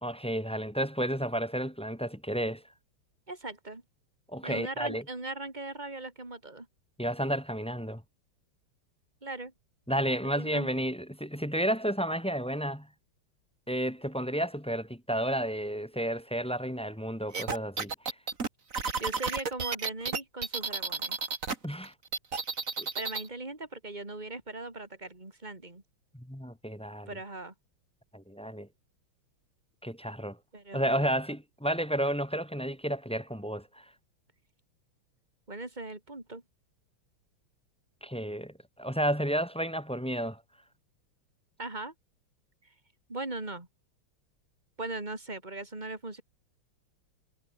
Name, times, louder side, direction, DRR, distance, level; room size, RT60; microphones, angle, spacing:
voice 1, 0.0-2.6 4.3-5.0 7.0-8.0 9.9-12.9 13.7-17.9 21.6-21.9 22.8-22.9 26.1-27.1 28.1-28.7 29.8-30.4 30.7-33.8 38.0-40.4, equal, 5° left, 1.5 m, -31 dB
voice 2, 3.3-3.8 4.4-6.7 9.2-9.5 10.4-10.7 19.0-21.2 22.9-25.8 27.1-27.5 30.5-31.1 35.5-36.4 41.6-41.9 43.1-43.7 44.8-46.2, right 2 dB, 20° right, 4.3 m, -39 dB
sound 1, 17.3-21.5 21.8-23.3, right 4 dB, 35° right, 2.5 m, -32 dB
omnidirectional pair, 2.4 m